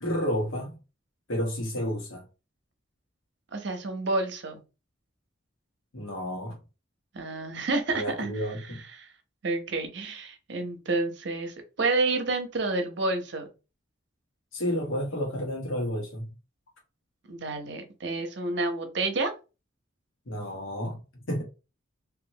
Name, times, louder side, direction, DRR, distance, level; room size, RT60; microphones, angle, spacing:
voice 1, 0.0-0.8 1.3-2.3 5.9-6.6 7.9-8.8 14.5-16.3 20.3-21.4, equal, 85° left, 1.1 m, -31 dB
voice 2, 3.5-4.6 7.1-8.3 9.0-9.1 9.4-13.5 17.3-19.3, right 3 dB, 60° right, 0.7 m, -29 dB
3.0 x 2.5 x 2.7 m
head